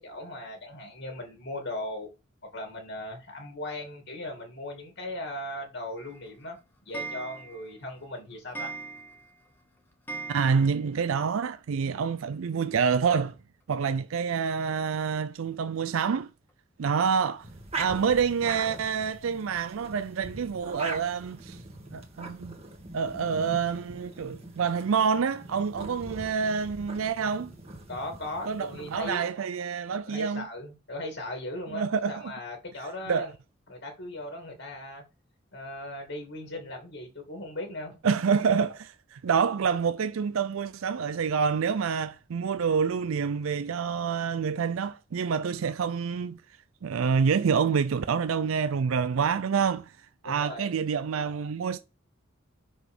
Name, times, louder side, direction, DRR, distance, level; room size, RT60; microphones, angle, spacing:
voice 1, 0.0-2.1 2.5-6.6 6.8-8.7 27.9-29.3 30.1-33.3 33.7-35.0 35.5-38.0 50.2-50.7, left 1 dB, 65° left, 2.0 m, -38 dB
Clock, 6.0-11.1 11.4-11.5 11.7-11.8 12.0-12.1 13.3-13.4 13.9-14.0 14.6-14.7 15.2-15.3 15.8-15.9 16.5-16.6, right 4 dB, 10° left, 1.1 m, -41 dB
voice 2, 10.3-13.4 13.7-16.3 16.8-17.5 17.8-21.6 21.9-22.5 22.9-27.5 28.5-30.5 31.7-32.3 33.1-33.3 38.0-46.4 46.8-49.9 50.2-51.8, right 6 dB, 85° right, 0.4 m, -27 dB
sound 1, 17.4-29.1, right 3 dB, 30° right, 1.7 m, -42 dB
6.1 x 5.8 x 3.5 m
head